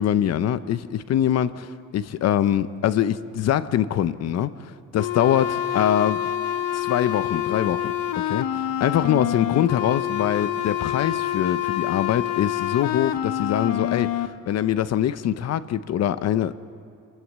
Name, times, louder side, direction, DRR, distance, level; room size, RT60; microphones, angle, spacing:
voice 1, 0.0-4.5 4.9-6.3 6.7-16.6, left 10 dB, 45° left, 14 dB, 0.7 m, -23 dB
sound 1, 5.0-14.3, left 11 dB, 65° left, 1.1 m, -27 dB
26.5 x 19.5 x 7.4 m, 2.3 s
cardioid pair, 170°, 38 cm